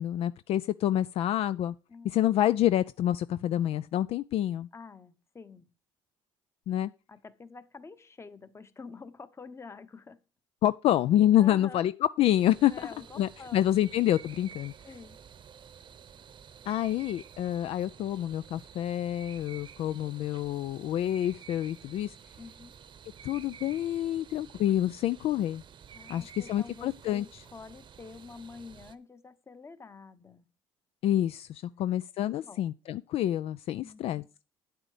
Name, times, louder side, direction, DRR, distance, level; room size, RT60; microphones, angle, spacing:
voice 1, 0.0-1.7 2.0-4.7 6.7-6.9 10.6-11.9 12.2-12.9 13.2-14.7 16.7-22.1 23.2-25.6 26.1-27.2 31.0-34.2, left 12 dB, 60° left, 0.4 m, -27 dB
voice 2, 1.9-2.2 4.7-5.7 7.1-10.2 11.4-11.9 12.7-13.8 14.8-15.2 22.4-22.7 25.9-30.5 31.7-31.9 32.2-32.7 33.7-34.3, left 4 dB, 25° left, 1.0 m, -48 dB
sound 1, 12.3-29.0, right 8 dB, 45° right, 0.9 m, -51 dB
9.2 x 8.0 x 4.9 m
supercardioid pair, 85°, 11 cm